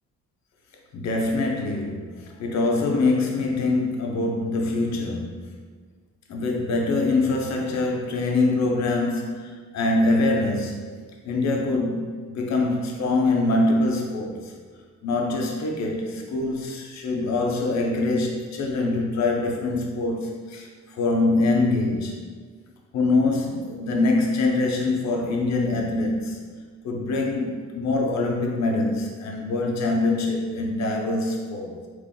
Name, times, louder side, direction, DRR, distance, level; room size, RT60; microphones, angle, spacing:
voice 1, 0.9-5.6 6.3-10.9 11.2-14.5 15.0-22.3 22.9-26.5 26.8-31.9, left 2 dB, 65° left, 1 dB, 0.7 m, -24 dB
3.6 x 2.6 x 3.7 m, 1.6 s
cardioid pair, 90°, 30 cm